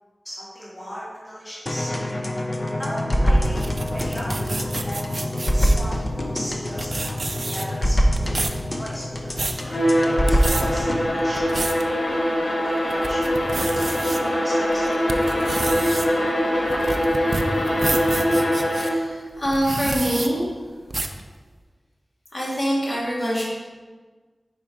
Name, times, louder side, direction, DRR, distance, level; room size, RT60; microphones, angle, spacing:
voice 1, 0.2-1.9 2.8-3.6 3.9-4.5 4.8-5.1 5.4-8.1 8.6-9.6 10.3-12.0 12.6-14.9, equal, 15° left, -7 dB, 1.8 m, -37 dB
sound 1, 1.7-11.1, equal, 30° left, 0.6 m, -24 dB
sound 2, 3.4-5.8 6.5-6.6 6.8-7.8 8.2-8.6 9.1-9.6 10.1-10.6 11.2-11.8 12.3-12.4 12.9-14.2 14.7-18.9 19.5-20.3 20.9-21.2, right 2 dB, 55° right, 0.4 m, -29 dB
Bowed string instrument, 9.6-19.1, equal, 70° left, 1.2 m, -22 dB
voice 2, 18.7-20.5 22.3-23.4, equal, 50° left, -7 dB, 1.8 m, -24 dB
5.1 x 4.5 x 4.7 m, 1.4 s
wide cardioid pair, 80°, 0 cm